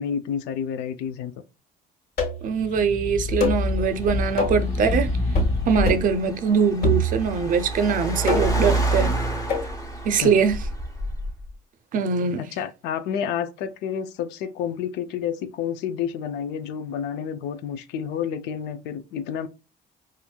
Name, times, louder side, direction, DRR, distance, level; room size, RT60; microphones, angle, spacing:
voice 1, 0.0-1.3 10.2-10.3 12.4-19.5, left 8 dB, 90° left, 0.4 m, -29 dB
sound 1, 2.2-2.5 3.4-3.7 4.4-4.7 5.3-5.6 5.9-6.2 6.8-7.4 8.3-8.7 9.5-9.7, left 1 dB, 60° left, 1.4 m, -25 dB
sound 2, 2.4-6.1, left 2 dB, 40° left, 1.0 m, -27 dB
voice 2, 2.4-5.1 5.7-9.2 10.0-10.6 11.9-12.4, right 6 dB, 55° right, 0.5 m, -22 dB
Car, 3.6-11.5, right 2 dB, 20° left, 1.1 m, -29 dB
4.3 x 2.5 x 2.2 m
cardioid pair, 110°, 17 cm